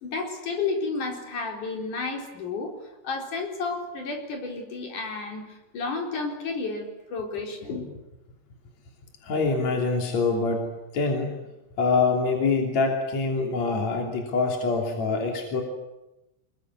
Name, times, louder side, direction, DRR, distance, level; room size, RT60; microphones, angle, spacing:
voice 1, 0.0-2.7 3.0-8.0, left 4 dB, 75° left, 2 dB, 5.7 m, -31 dB
voice 2, 9.2-10.7 10.9-11.3 11.8-15.6, left 4 dB, 60° left, 1 dB, 4.3 m, -25 dB
28.5 x 22.0 x 9.6 m, 0.95 s
omnidirectional pair, 3.6 m